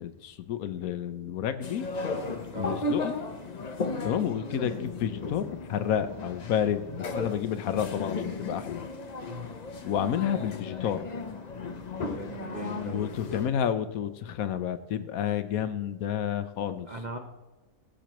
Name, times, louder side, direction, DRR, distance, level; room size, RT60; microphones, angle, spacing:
voice 1, 0.0-1.9 2.6-3.2 4.0-8.8 9.8-11.1 12.6-16.9, left 9 dB, 70° left, 12 dB, 1.1 m, -30 dB
sound 1, 1.6-13.5, left 3 dB, 40° left, 0.7 m, -35 dB
voice 2, 12.0-13.1 16.9-17.2, right 2 dB, 35° right, 4 dB, 0.8 m, -39 dB
15.0 x 7.7 x 3.0 m, 1.1 s
omnidirectional pair, 1.6 m